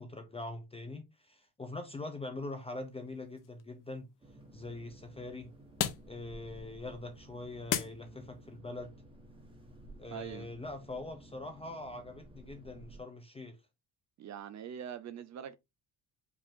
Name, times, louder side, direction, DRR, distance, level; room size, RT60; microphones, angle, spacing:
voice 1, 0.0-4.1 4.5-5.5 6.1-8.9 10.0-13.6, left 2 dB, 15° left, 0.5 m, -43 dB
sound 1, 2.5-8.6, left 10 dB, 50° left, 0.7 m, -41 dB
sound 2, 4.2-13.0, right 1 dB, 10° right, 1.2 m, -54 dB
voice 2, 10.1-10.5 14.2-15.6, right 8 dB, 45° right, 0.4 m, -43 dB
5.2 x 2.5 x 3.5 m
cardioid pair, 160°, 41 cm